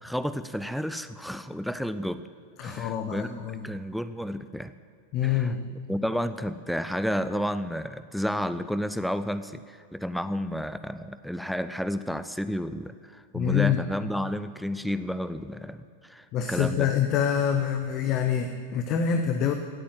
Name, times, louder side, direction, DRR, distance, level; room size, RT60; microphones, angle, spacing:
voice 1, 0.0-2.2 2.6-4.7 5.2-5.5 5.9-16.9, equal, ahead, 12 dB, 0.5 m, -31 dB
voice 2, 2.6-3.6 5.1-5.6 13.3-13.8 16.3-19.5, left 8 dB, 35° left, 7 dB, 0.8 m, -26 dB
17.0 x 8.5 x 7.7 m, 2.4 s
figure-of-eight pair, 90°, 0 cm